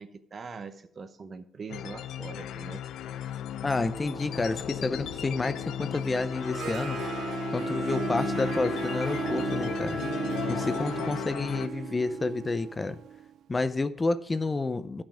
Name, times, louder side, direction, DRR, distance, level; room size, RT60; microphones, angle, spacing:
voice 1, 0.0-2.8, right 5 dB, 45° right, 11 dB, 0.8 m, -42 dB
sound 1, 1.7-11.7, left 10 dB, 80° left, 0.4 m, -36 dB
voice 2, 3.6-7.3 7.5-10.0 10.5-13.0 13.5-15.0, left 3 dB, 25° left, 13 dB, 0.5 m, -30 dB
Wind instrument woodwind instrument, 3.9-12.7, right 1 dB, 5° right, 1.3 m, -37 dB
Harp, 6.3-13.4, right 10 dB, 75° right, 0.3 m, -38 dB
11.5 x 6.1 x 4.9 m, 0.71 s
cardioid pair, 90°, 0 cm